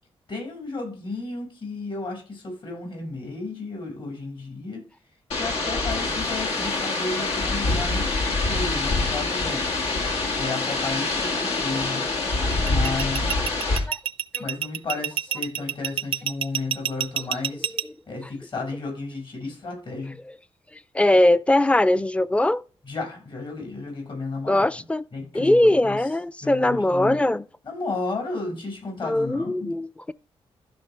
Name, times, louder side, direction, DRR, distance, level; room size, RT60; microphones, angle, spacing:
voice 1, 0.3-4.9 5.3-9.8 10.4-12.0 12.6-13.4 14.4-17.7 18.1-20.2 22.8-24.7 25.1-26.0 26.4-27.2 27.6-29.7, left 3 dB, 50° left, 5.8 m, -33 dB
sound 1, 5.3-13.8, left 3 dB, 85° left, 2.2 m, -25 dB
sound 2, 12.5-17.8, right 10 dB, 65° right, 0.4 m, -27 dB
voice 2, 12.6-12.9 13.3-14.0 14.3-14.4 20.7-22.6 24.5-25.0 25.3-27.4 29.0-30.1, left 1 dB, 10° left, 0.5 m, -21 dB
14.5 x 5.7 x 3.4 m
cardioid pair, 85°, 10 cm